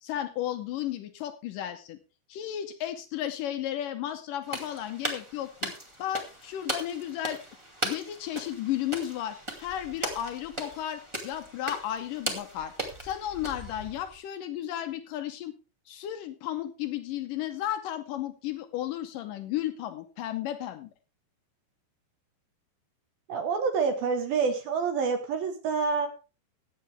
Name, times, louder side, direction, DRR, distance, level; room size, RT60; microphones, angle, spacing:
voice 1, 0.0-2.0 2.3-5.7 6.0-7.4 7.8-12.7 13.0-15.5 15.9-20.9, left 11 dB, 80° left, 8 dB, 1.9 m, -34 dB
sound 1, 4.4-14.2, right 1 dB, 20° right, 0.8 m, -38 dB
voice 2, 23.3-26.1, right 5 dB, 65° right, 5 dB, 2.9 m, -27 dB
15.5 x 9.4 x 3.5 m, 0.33 s
omnidirectional pair, 4.9 m